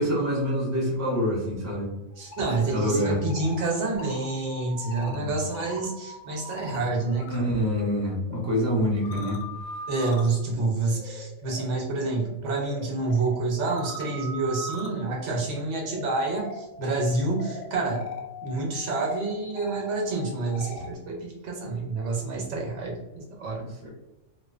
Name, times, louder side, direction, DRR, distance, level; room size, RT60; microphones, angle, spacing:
voice 1, 0.0-1.9 2.7-3.2 5.0-5.3 7.3-9.4 10.5-10.6 23.5-23.9, equal, 15° right, -4 dB, 0.6 m, -26 dB
sound 1, 2.1-7.4 7.7-21.0, equal, 70° left, 0.4 m, -42 dB
voice 2, 2.2-7.5 9.9-18.0 18.4-23.6, right 3 dB, 75° right, 0 dB, 0.9 m, -28 dB
2.6 x 2.1 x 2.3 m, 0.99 s
omnidirectional pair, 1.3 m